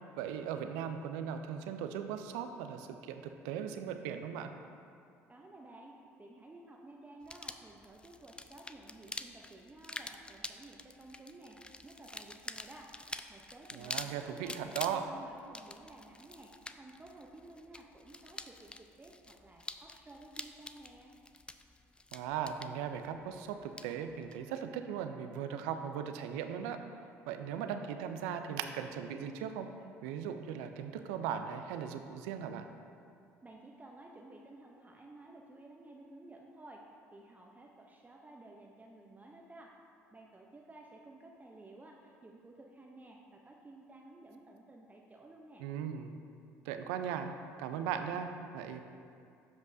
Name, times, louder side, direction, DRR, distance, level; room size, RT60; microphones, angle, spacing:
voice 1, 0.2-4.5 13.7-15.0 22.1-26.8 27.3-29.7 30.0-32.7 45.6-46.1 46.6-47.3 47.6-48.8, right 8 dB, 75° right, 7 dB, 0.5 m, -38 dB
voice 2, 5.3-12.9 13.3-21.1 33.4-39.7 40.1-45.7, right 2 dB, 20° right, -1 dB, 0.7 m, -54 dB
sound 1, 7.2-24.4, left 2 dB, 15° left, 0.4 m, -47 dB
12.0 x 5.3 x 2.7 m, 2.4 s
hypercardioid pair, 60°, 7 cm